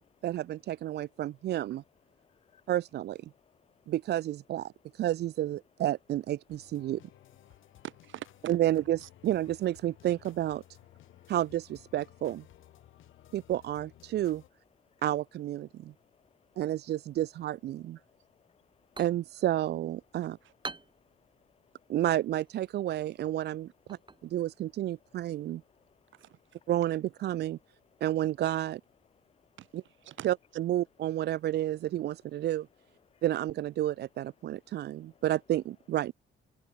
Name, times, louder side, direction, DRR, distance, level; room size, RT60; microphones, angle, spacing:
voice 1, 0.2-1.8 2.7-3.2 3.9-7.0 8.5-10.6 11.3-12.4 13.3-14.4 15.0-15.9 16.6-18.0 19.0-20.4 21.9-25.6 26.7-27.6 28.0-28.8 29.7-29.8 30.2-32.7 33.2-36.1, right 13 dB, 55° right, 0.4 m, -31 dB
voice 2, 2.1-2.7 3.3-3.9 7.5-7.8 11.0-11.3 12.8-13.3 14.8-15.0 15.7-16.6 18.0-19.0 20.7-21.9 24.0-24.3 25.1-25.2 25.7-26.2 27.9-28.0 29.2-29.5 33.1-33.2 34.7-35.2, left 8 dB, 30° left, 0.5 m, -68 dB
sound 1, 6.5-14.5, left 13 dB, 80° left, 6.3 m, -57 dB
voice 3, 7.8-8.6 9.0-9.1 17.9-18.0 20.4-20.5 26.1-26.6 29.6-30.3, right 13 dB, 75° right, 1.5 m, -46 dB
sound 2, 18.6-26.1, right 3 dB, 25° right, 4.1 m, -50 dB
cardioid pair, 90°, 20 cm